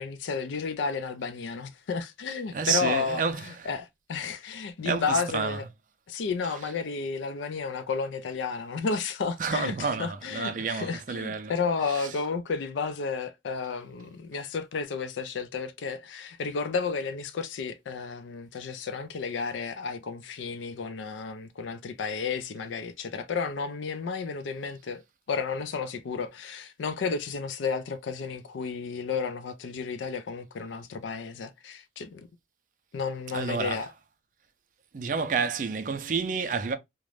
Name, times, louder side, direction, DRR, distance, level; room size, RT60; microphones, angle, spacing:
voice 1, 0.0-5.6 6.1-25.0 25.3-32.3 32.9-33.9, left 5 dB, 90° left, 0.4 m, -32 dB
voice 2, 2.5-3.5 4.8-5.6 9.4-11.5 11.9-12.1 33.3-33.9 34.9-36.8, right 5 dB, 45° right, 0.4 m, -29 dB
2.4 x 2.1 x 3.1 m
head